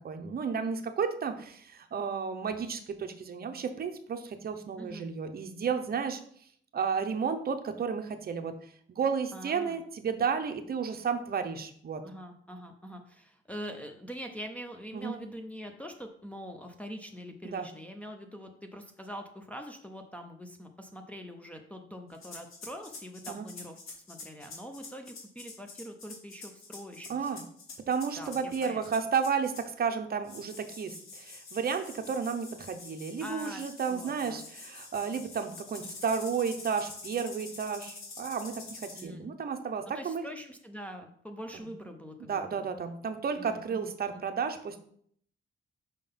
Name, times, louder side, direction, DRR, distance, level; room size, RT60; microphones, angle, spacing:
voice 1, 0.0-6.2 6.7-8.6 8.9-12.0 14.9-15.2 17.4-17.7 23.3-23.5 27.1-27.4 27.9-40.3 41.5-41.7 42.2-44.8, right 6 dB, 50° right, 7 dB, 0.7 m, -32 dB
voice 2, 9.3-9.8 12.0-23.8 24.1-27.4 28.2-28.8 33.2-34.5 39.0-39.3 39.9-42.7 43.4-44.2, equal, 5° left, 2 dB, 0.6 m, -44 dB
sound 1, 22.1-29.8 30.2-39.0, left 3 dB, 90° left, 1.8 m, -46 dB
5.5 x 3.8 x 5.3 m, 0.63 s
wide cardioid pair, 140°, 21 cm